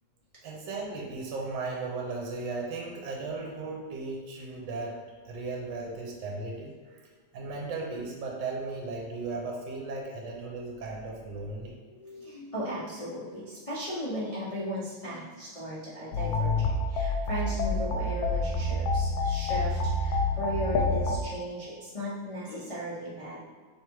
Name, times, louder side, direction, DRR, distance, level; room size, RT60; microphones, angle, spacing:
voice 1, 0.4-7.1 7.3-11.8, right 3 dB, 70° right, -1 dB, 1.3 m, -36 dB
voice 2, 11.9-23.4, equal, 60° left, -10 dB, 0.3 m, -36 dB
sound 1, 16.1-21.2, left 2 dB, 80° left, 1.3 m, -28 dB
3.5 x 3.2 x 4.5 m, 1.5 s
omnidirectional pair, 2.1 m